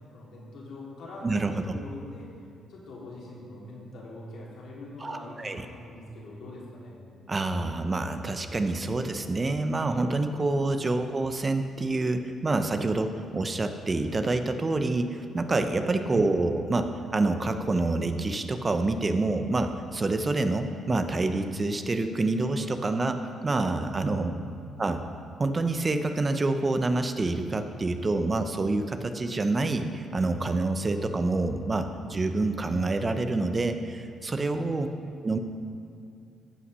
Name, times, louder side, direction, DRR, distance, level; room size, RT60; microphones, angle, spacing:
voice 1, 0.1-1.3 1.6-2.3 2.7-7.0 16.1-16.2 24.2-24.6 34.6-35.1, left 2 dB, 75° left, -5 dB, 3.1 m, -43 dB
voice 2, 1.2-1.8 5.0-5.6 7.3-24.3 24.8-25.0 25.4-34.9 35.2-35.4, right 2 dB, 30° right, 8 dB, 0.6 m, -27 dB
14.0 x 5.7 x 5.5 m, 2.4 s
cardioid pair, 90°, 0 cm